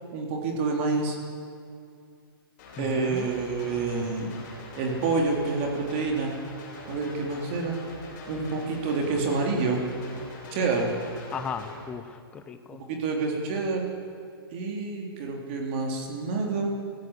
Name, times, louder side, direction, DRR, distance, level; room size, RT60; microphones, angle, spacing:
voice 1, 0.1-1.2 2.8-4.3 4.8-6.3 6.9-7.8 8.3-9.8 10.5-10.9 12.9-13.9 14.5-16.7, right 4 dB, 30° right, 1 dB, 3.4 m, -28 dB
sound 1, 2.6-11.7, left 2 dB, 30° left, 7.7 m, -43 dB
voice 2, 2.8-3.3 11.3-12.8, left 6 dB, 10° left, 9 dB, 0.8 m, -36 dB
28.5 x 16.0 x 8.2 m, 2.4 s
hypercardioid pair, 170°, 13 cm